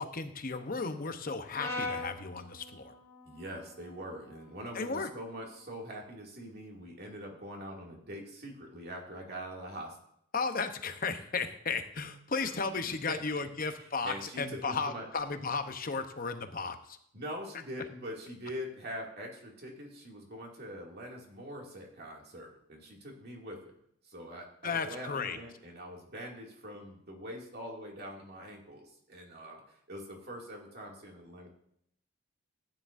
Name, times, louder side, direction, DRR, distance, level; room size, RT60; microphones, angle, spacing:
voice 1, 0.0-2.9 4.7-5.1 10.3-17.0 24.6-25.4, left 4 dB, 40° left, 8 dB, 0.8 m, -34 dB
Brass instrument, 1.6-5.8, left 2 dB, 15° left, 1.8 m, -43 dB
voice 2, 3.2-10.0 12.4-13.2 13.8-15.1 17.1-23.7 24.0-31.5, equal, 50° right, -1 dB, 2.4 m, -43 dB
14.5 x 9.9 x 2.6 m, 0.71 s
head